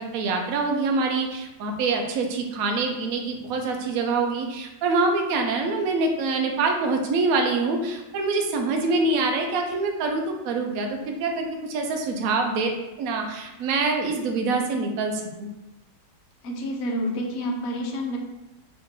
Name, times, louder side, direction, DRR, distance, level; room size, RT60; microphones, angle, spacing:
voice 1, 0.0-12.7 13.0-15.5, right 3 dB, 65° right, 3 dB, 0.9 m, -25 dB
voice 2, 16.4-18.2, equal, 65° left, 0 dB, 0.6 m, -29 dB
4.0 x 2.9 x 3.5 m, 0.97 s
omnidirectional pair, 1.9 m